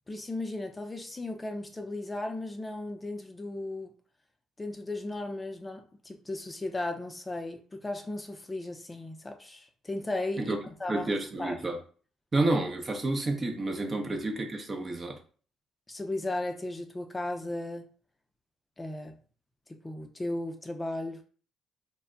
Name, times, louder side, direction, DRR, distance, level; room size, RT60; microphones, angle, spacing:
voice 1, 0.1-3.9 4.6-11.1 11.4-11.6 14.1-14.2 15.9-17.9 18.8-19.2 19.7-21.2, left 2 dB, 20° left, 0.5 m, -36 dB
voice 2, 10.9-11.8 12.3-15.2, right 2 dB, 35° right, 0.7 m, -30 dB
2.2 x 2.1 x 3.6 m
hypercardioid pair, 55°, 0 cm